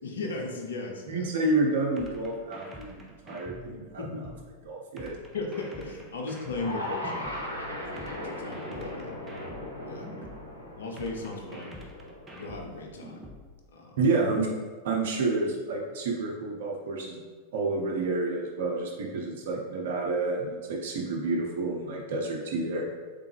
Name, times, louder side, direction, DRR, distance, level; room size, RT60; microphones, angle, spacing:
voice 1, 0.0-1.3 4.0-4.2 5.3-7.4 7.7-9.2 9.8-10.1 10.8-11.8 12.3-13.3 13.7-14.0, left 3 dB, 65° left, 1 dB, 0.7 m, -37 dB
voice 2, 1.1-4.2 4.7-5.2 8.0-8.1 14.0-14.5 14.8-17.2 17.5-22.9, right 3 dB, 60° right, -1 dB, 0.8 m, -29 dB
sound 1, 2.0-4.4 5.0-7.4 8.0-10.4 11.0-13.4, equal, 15° right, 0.7 m, -46 dB
sound 2, 6.5-12.7, left 1 dB, 85° left, 0.9 m, -38 dB
3.7 x 3.5 x 3.4 m, 1.5 s
figure-of-eight pair, 90°, 0 cm